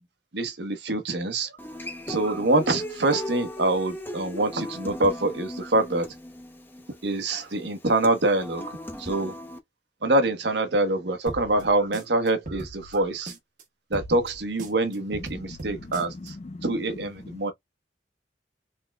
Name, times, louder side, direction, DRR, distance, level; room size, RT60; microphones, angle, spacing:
voice 1, 0.3-1.5 2.1-6.1 7.0-8.7 9.0-9.3 10.0-13.3 13.9-16.3 16.6-17.5, right 2 dB, 70° right, 1.1 m, -25 dB
Human voice / Acoustic guitar, 1.6-9.6, left 1 dB, 10° left, 0.8 m, -38 dB
sound 1, 11.3-13.6 13.9-16.3, right 1 dB, 45° right, 1.5 m, -40 dB
voice 2, 15.1-17.4, left 2 dB, 35° left, 0.4 m, -41 dB
4.3 x 3.7 x 2.3 m
head